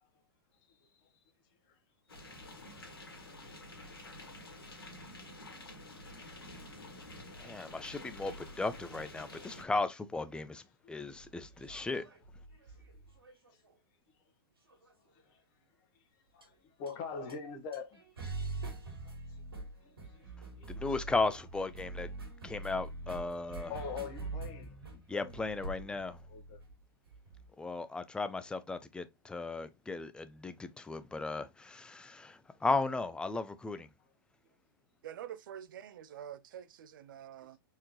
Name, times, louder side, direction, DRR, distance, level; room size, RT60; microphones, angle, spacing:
voice 1, 0.7-1.1 4.8-4.9 5.5-5.6 6.8-6.9 11.7-11.8 15.1-15.4 16.3-16.5 16.8-18.0 19.0-19.1 19.5-20.2 20.6-20.7 23.7-25.4 26.3-26.6, left 5 dB, 40° left, 1.3 m, -44 dB
sound 1, 2.1-9.6, left 1 dB, 80° left, 1.9 m, -49 dB
voice 2, 7.4-10.6 10.9-12.1 20.7-22.1 22.4-23.7 25.1-26.2 27.6-33.9, left 3 dB, 5° left, 0.5 m, -36 dB
sound 2, 11.2-13.8 14.7-15.2 16.4-16.5 16.9-17.0 17.3-17.4 17.7-27.5, right 3 dB, 80° right, 2.3 m, -44 dB
voice 3, 35.0-37.6, right 10 dB, 60° right, 0.6 m, -46 dB
4.5 x 3.7 x 2.9 m
figure-of-eight pair, 105°, 12 cm